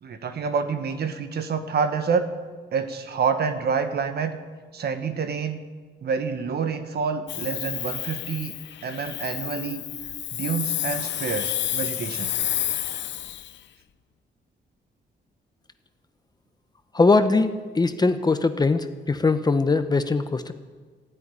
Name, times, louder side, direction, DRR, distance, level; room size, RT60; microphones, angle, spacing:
voice 1, 0.0-2.3 2.7-4.4 4.7-5.6 6.0-8.5 8.8-9.8 10.3-12.3, right 5 dB, 60° right, 9 dB, 1.4 m, -27 dB
Hiss, 7.3-13.6, left 12 dB, 75° left, 0.6 m, -30 dB
voice 2, 16.9-17.5 17.7-20.5, left 3 dB, 20° left, 9 dB, 0.8 m, -21 dB
15.0 x 9.7 x 9.8 m, 1.5 s
wide cardioid pair, 140°, 19 cm